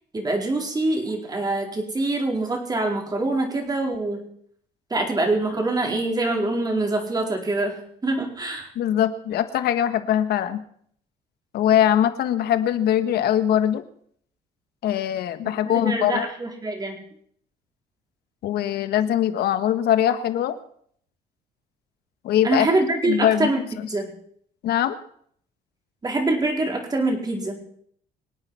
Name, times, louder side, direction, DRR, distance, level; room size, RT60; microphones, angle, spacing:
voice 1, 0.1-4.2 4.9-7.8 8.0-8.7 15.4-17.0 22.4-23.6 23.9-24.1 26.0-27.6, right 2 dB, 25° right, 2 dB, 4.4 m, -24 dB
voice 2, 8.7-10.6 11.5-13.8 14.8-16.3 18.4-20.6 22.2-22.7 23.0-23.5 23.8-23.9 24.6-25.0, left 10 dB, 70° left, 11 dB, 1.5 m, -22 dB
25.0 x 9.0 x 5.7 m, 0.64 s
cardioid pair, 110°, 17 cm